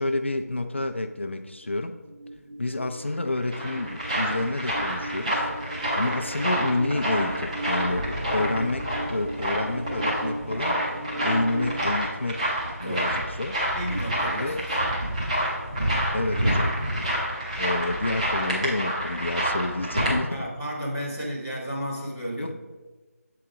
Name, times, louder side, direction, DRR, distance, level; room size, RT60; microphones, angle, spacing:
voice 1, 0.0-2.0 2.6-5.5 5.9-13.6 14.3-14.6 16.1-16.7 17.6-20.5 22.4-22.5, left 2 dB, 45° left, 7 dB, 0.4 m, -29 dB
sound 1, 1.6-11.8, right 1 dB, 90° right, 1.6 m, -37 dB
sound 2, 3.1-20.2, equal, 25° right, 1.5 m, -28 dB
voice 2, 7.8-8.8 12.8-13.1 13.7-14.9 20.3-22.5, equal, 10° right, -7 dB, 0.6 m, -33 dB
7.7 x 3.8 x 4.7 m, 1.2 s
figure-of-eight pair, 170°, 9 cm